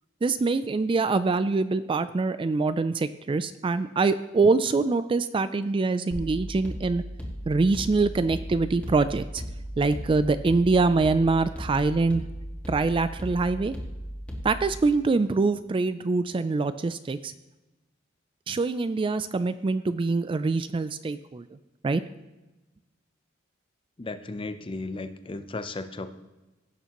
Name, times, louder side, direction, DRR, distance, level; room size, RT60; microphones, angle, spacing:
voice 1, 0.2-7.0 7.5-9.4 9.8-12.2 12.7-13.7 14.4-17.3 18.5-21.4 21.8-22.0, right 3 dB, 25° right, 13 dB, 0.3 m, -24 dB
sound 1, 6.1-14.8, equal, 5° left, 1.8 m, -36 dB
voice 2, 24.0-26.1, left 2 dB, 25° left, 10 dB, 0.6 m, -35 dB
16.5 x 6.9 x 3.0 m, 1.1 s
head